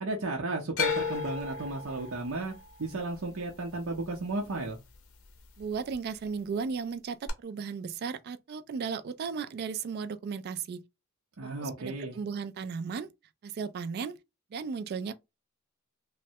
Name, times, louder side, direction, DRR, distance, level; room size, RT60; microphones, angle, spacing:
voice 1, 0.0-2.5 2.8-4.8 11.4-12.2, right 2 dB, 90° right, 0.6 m, -34 dB
sound 1, 0.8-5.0 5.2-5.9 7.3-7.4, left 5 dB, 90° left, 0.6 m, -35 dB
voice 2, 5.6-10.8 11.4-13.1 13.4-14.2 14.5-15.1, right 5 dB, 50° right, 0.3 m, -35 dB
3.1 x 2.1 x 2.7 m
head